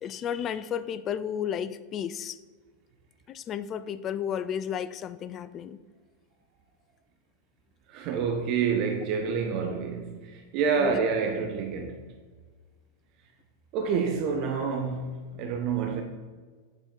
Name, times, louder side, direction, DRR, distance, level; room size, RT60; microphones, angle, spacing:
voice 1, 0.0-2.4 3.3-5.8 10.8-11.0, left 8 dB, 30° left, 0.3 m, -33 dB
voice 2, 7.9-12.0 13.7-16.0, right 6 dB, 40° right, 0.6 m, -28 dB
7.8 x 4.3 x 3.7 m
figure-of-eight pair, 90°, 0 cm